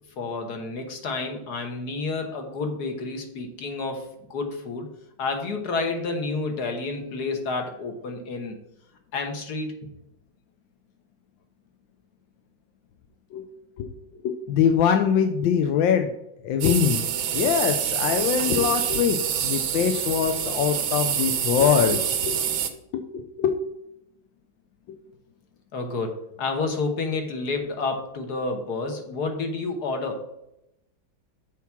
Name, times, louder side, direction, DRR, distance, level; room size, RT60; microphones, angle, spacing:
voice 1, 0.2-4.9 5.2-8.6 9.1-9.7 25.7-30.2, left 3 dB, 55° left, 4 dB, 1.6 m, -30 dB
voice 2, 14.2-16.1 16.4-17.0 17.3-19.2 19.4-22.4 22.9-23.6, left 8 dB, 75° left, 7 dB, 1.3 m, -23 dB
sound 1, 16.6-22.7, right 9 dB, 90° right, 1.7 m, -26 dB
7.0 x 4.7 x 5.8 m, 0.83 s
omnidirectional pair, 2.2 m